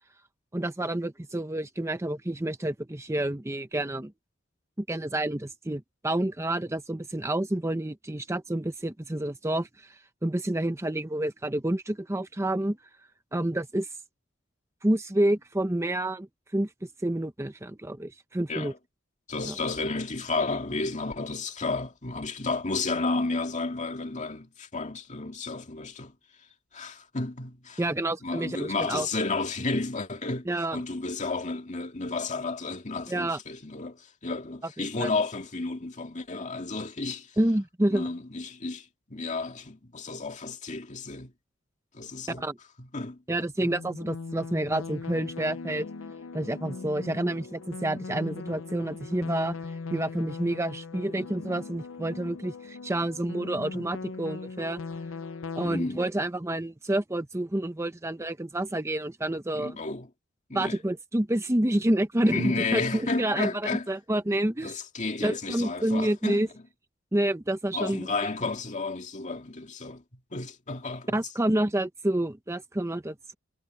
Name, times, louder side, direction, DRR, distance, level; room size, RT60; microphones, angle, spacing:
voice 1, 0.5-4.1 4.8-12.8 13.3-13.9 14.8-16.3 16.5-18.7 19.4-19.5 27.8-29.1 30.5-30.8 33.1-33.4 34.8-35.1 37.4-38.1 42.3-42.6 43.3-45.9 46.3-49.6 49.9-54.8 55.6-59.8 60.5-64.8 65.2-66.5 67.1-68.1 71.1-73.3, right 1 dB, 15° right, 0.8 m, -29 dB
voice 2, 19.3-26.1 26.4-26.5 26.7-27.8 28.2-37.4 37.9-41.3 41.9-42.5 42.8-43.2 43.6-43.7 53.7-53.9 55.6-56.0 59.5-60.1 60.5-60.8 61.7-61.8 62.2-63.9 64.6-66.4 67.7-71.2, left 3 dB, 40° left, 2.2 m, -32 dB
sound 1, 43.6-55.7, left 4 dB, 80° left, 0.6 m, -39 dB
head